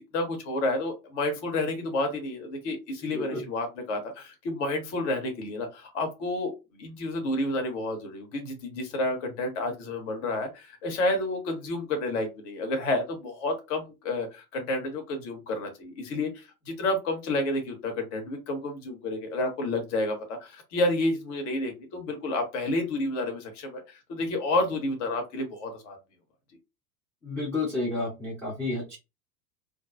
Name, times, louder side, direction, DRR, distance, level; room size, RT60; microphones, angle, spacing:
voice 1, 0.1-26.0, left 2 dB, 50° left, 4 dB, 0.9 m, -30 dB
voice 2, 3.0-3.4 27.2-29.0, left 2 dB, 5° left, -5 dB, 0.3 m, -31 dB
2.5 x 2.2 x 2.3 m, 0.25 s
figure-of-eight pair, 85°, 46 cm